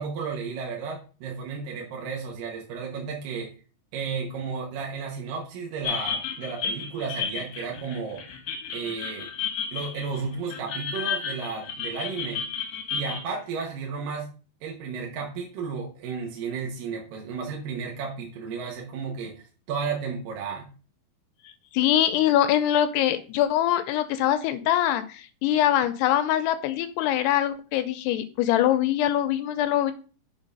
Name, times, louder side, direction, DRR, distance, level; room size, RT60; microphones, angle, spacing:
voice 1, 0.0-3.5 3.9-8.2 8.7-9.3 9.7-12.4 12.9-14.3 14.6-20.7, right 5 dB, 65° right, -1 dB, 2.5 m, -33 dB
sound 1, 5.8-13.2, left 6 dB, 65° left, 1.9 m, -32 dB
voice 2, 21.7-29.9, left 12 dB, 80° left, 11 dB, 2.6 m, -23 dB
7.3 x 4.0 x 5.4 m, 0.37 s
omnidirectional pair, 4.9 m